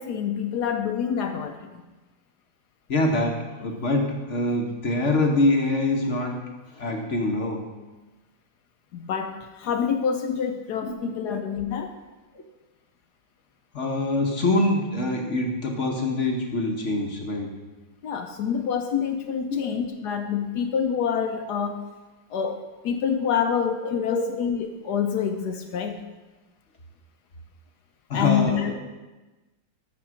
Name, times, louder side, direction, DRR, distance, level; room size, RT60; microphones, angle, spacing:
voice 1, 0.0-1.8 8.9-11.9 18.0-21.8 22.3-26.0 28.1-28.7, left 7 dB, 70° left, 6 dB, 1.1 m, -27 dB
voice 2, 2.9-6.4 6.8-7.7 11.3-11.4 13.7-17.5 19.5-19.7 24.1-24.2 28.1-28.8, left 2 dB, 45° left, 2 dB, 1.1 m, -24 dB
13.0 x 4.4 x 6.1 m, 1.2 s
omnidirectional pair, 2.1 m